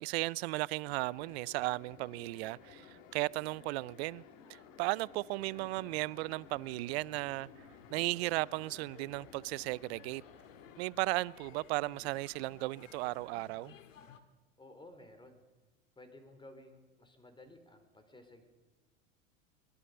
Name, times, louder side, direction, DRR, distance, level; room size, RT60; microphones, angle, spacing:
voice 1, 0.0-4.2 4.5-7.5 7.9-10.2 10.8-13.7, right 22 dB, 55° right, 0.6 m, -35 dB
sound 1, 0.9-10.8, left 6 dB, 55° left, 2.8 m, -56 dB
sound 2, 5.4-14.2, left 7 dB, 80° left, 2.0 m, -58 dB
voice 2, 14.6-15.4 16.0-18.4, left 1 dB, 10° left, 4.3 m, -55 dB
23.0 x 20.0 x 6.7 m
hypercardioid pair, 85°, 39 cm